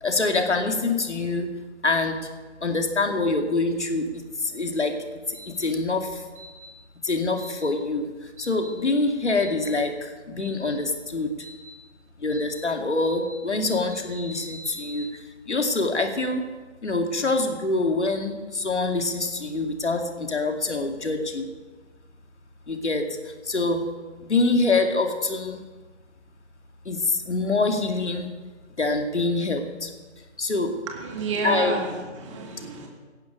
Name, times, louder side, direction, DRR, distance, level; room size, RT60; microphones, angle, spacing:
voice 1, 0.0-1.5 1.8-2.3 2.6-4.1 4.4-5.0 5.3-6.3 7.0-11.3 12.2-15.2 15.5-16.4 16.8-21.5 22.7-23.8 24.2-25.6 26.8-28.3 28.8-29.9 30.4-30.7 31.4-31.8, left 3 dB, 70° left, 4 dB, 2.5 m, -25 dB
sound 1, 5.3-5.7 6.4-6.7 7.4-7.7 8.4-8.7 9.4-9.7 10.4-10.7 11.4-11.7 12.3-12.6 13.0-13.3 13.6-15.0, right 2 dB, 5° right, 2.4 m, -44 dB
voice 2, 30.9-32.9, right 3 dB, 25° right, 1 dB, 1.9 m, -30 dB
18.0 x 11.5 x 5.2 m, 1.3 s
figure-of-eight pair, 150°, 36 cm